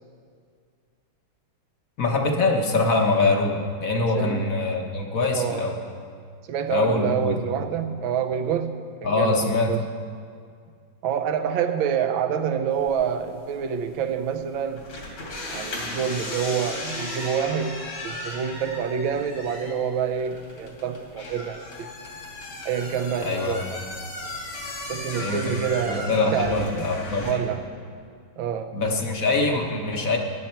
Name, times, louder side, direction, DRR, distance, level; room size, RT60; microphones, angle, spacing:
voice 1, 2.0-5.8 6.7-7.4 9.0-9.7 23.2-23.6 25.2-25.4 25.9-27.4 28.7-30.2, left 3 dB, 50° left, 2 dB, 1.2 m, -23 dB
voice 2, 5.3-5.7 6.5-9.8 11.0-14.9 15.5-21.9 22.6-23.8 24.9-26.9 27.2-27.6 28.4-28.7, right 7 dB, 75° right, 8 dB, 1.5 m, -27 dB
sound 1, 12.7-27.3, left 2 dB, 75° left, 3.4 m, -37 dB
17.0 x 10.5 x 4.5 m, 2.2 s
omnidirectional pair, 2.3 m